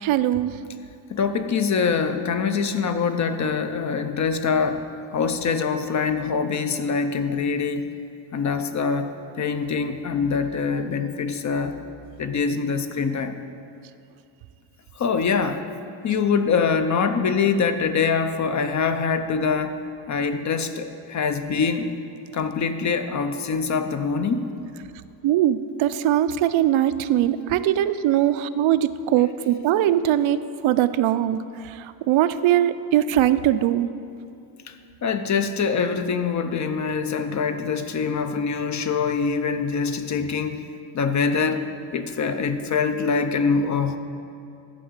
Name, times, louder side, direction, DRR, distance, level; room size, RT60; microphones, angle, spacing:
voice 1, 0.0-0.6 25.2-30.4 30.6-31.4 31.6-33.9, right 12 dB, 70° right, 13 dB, 0.5 m, -21 dB
voice 2, 1.1-4.9 5.1-7.9 8.3-9.1 9.4-11.8 12.2-13.4 15.0-15.6 16.0-19.8 20.1-21.9 22.3-24.5 35.0-40.6 40.9-41.7 41.9-44.0, left 5 dB, 40° left, 9 dB, 0.5 m, -24 dB
11.5 x 4.7 x 8.0 m, 2.6 s
cardioid pair, 150°, 49 cm